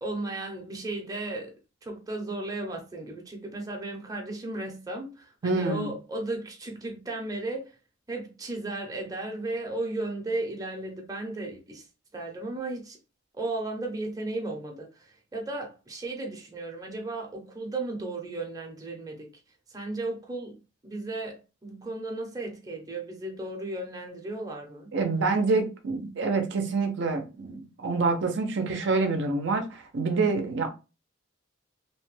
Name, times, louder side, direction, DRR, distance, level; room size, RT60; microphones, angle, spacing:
voice 1, 0.0-1.5 1.8-7.8 8.1-11.9 12.1-13.0 13.3-19.3 19.7-20.6 20.8-24.9, right 2 dB, 20° right, 0.6 m, -35 dB
voice 2, 5.4-5.9 24.9-30.7, right 3 dB, 60° right, 0.5 m, -27 dB
2.8 x 2.1 x 3.1 m
head